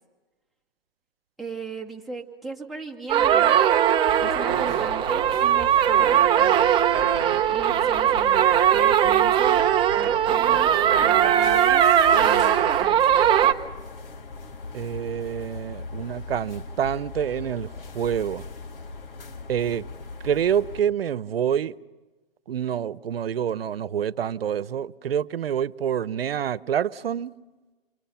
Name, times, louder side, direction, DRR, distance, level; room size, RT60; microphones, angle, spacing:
voice 1, 1.4-3.6 4.2-6.7 7.5-8.5 8.7-9.7 9.9-10.7 11.0-11.9 12.1-13.3, right 4 dB, ahead, 2.4 m, -37 dB
sound 1, 3.1-13.5, right 10 dB, 15° right, 1.0 m, -19 dB
sound 2, 4.1-20.8, left 3 dB, 70° left, 3.6 m, -39 dB
voice 2, 14.7-17.7 17.9-18.4 19.5-19.9 20.2-21.7 22.5-27.3, right 9 dB, 85° right, 1.0 m, -27 dB
29.5 x 24.0 x 5.8 m
hypercardioid pair, 150°, 29 cm